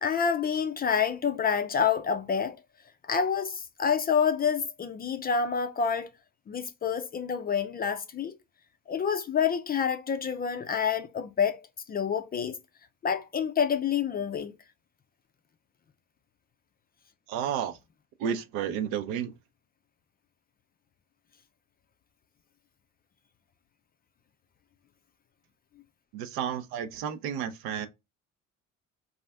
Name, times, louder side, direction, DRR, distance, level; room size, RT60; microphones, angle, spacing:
voice 1, 0.0-2.6 3.1-6.1 6.5-8.3 8.9-11.6 11.9-12.6 13.0-14.5, left 7 dB, 25° left, 0.4 m, -28 dB
voice 2, 17.3-17.8 18.2-19.3 26.1-27.9, right 8 dB, 60° right, 0.6 m, -31 dB
4.1 x 2.4 x 3.3 m
figure-of-eight pair, 60°, 40 cm